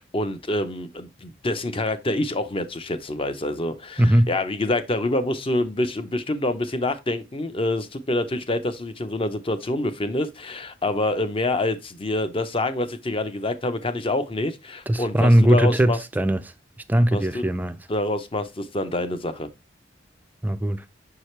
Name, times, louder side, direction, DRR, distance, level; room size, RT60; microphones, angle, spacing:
voice 1, 0.0-16.0 17.1-17.4 17.9-19.5, left 1 dB, 30° left, 0.6 m, -26 dB
voice 2, 4.0-4.3 14.9-16.4 16.9-17.8 20.4-20.8, right 1 dB, 10° right, 0.4 m, -19 dB
6.5 x 4.8 x 3.1 m
head